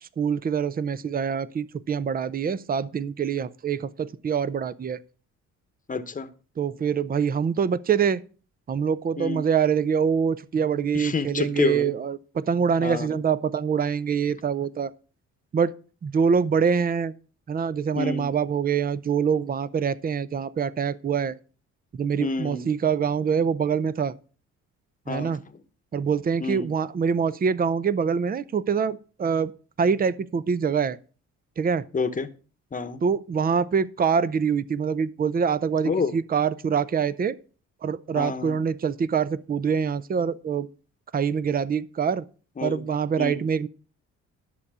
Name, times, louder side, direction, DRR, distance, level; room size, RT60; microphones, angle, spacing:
voice 1, 0.0-5.0 6.6-8.2 8.7-14.9 15.5-15.7 16.0-17.1 17.5-21.4 21.9-24.2 25.1-25.4 25.9-29.5 29.8-31.0 31.6-31.9 33.0-37.4 37.8-40.7 41.1-42.2 42.6-43.7, right 6 dB, 30° right, 0.6 m, -25 dB
voice 2, 5.9-6.3 9.2-9.4 10.9-11.9 12.8-13.1 18.0-18.3 22.2-22.7 25.1-25.3 26.4-26.6 31.9-32.3 32.7-33.0 35.8-36.1 38.2-38.5 42.6-42.8 43.2-43.4, left 4 dB, 25° left, 1.0 m, -28 dB
11.5 x 6.7 x 4.8 m
cardioid pair, 90°, 30 cm